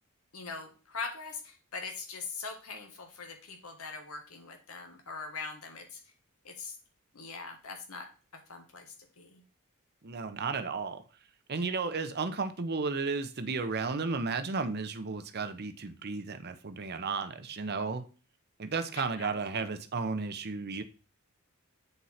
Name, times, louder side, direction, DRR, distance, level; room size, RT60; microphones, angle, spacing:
voice 1, 0.3-6.0 6.4-6.7 7.1-8.1 8.5-9.3 19.2-19.3, left 4 dB, 85° left, 1.6 m, -42 dB
voice 2, 10.0-11.0 11.5-18.0 18.6-20.8, right 4 dB, 50° right, 0.8 m, -33 dB
8.0 x 4.5 x 4.2 m
head